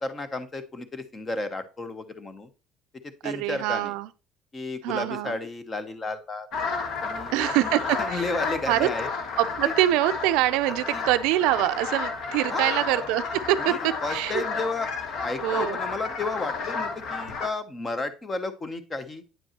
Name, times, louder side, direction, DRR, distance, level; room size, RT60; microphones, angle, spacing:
voice 1, 0.0-2.5 3.2-3.9 4.5-6.5 7.0-7.3 8.0-9.1 10.9-11.0 12.5-12.8 13.6-14.9 15.2-19.2, left 3 dB, 20° left, 0.7 m, -32 dB
voice 2, 3.2-4.1 4.8-5.4 7.3-8.3 8.7-8.9 9.4-14.4 15.4-15.8, right 15 dB, 85° right, 0.4 m, -25 dB
sound 1, 6.5-17.5, left 4 dB, 50° left, 1.1 m, -32 dB
8.8 x 5.3 x 2.9 m
cardioid pair, 150°, 0 cm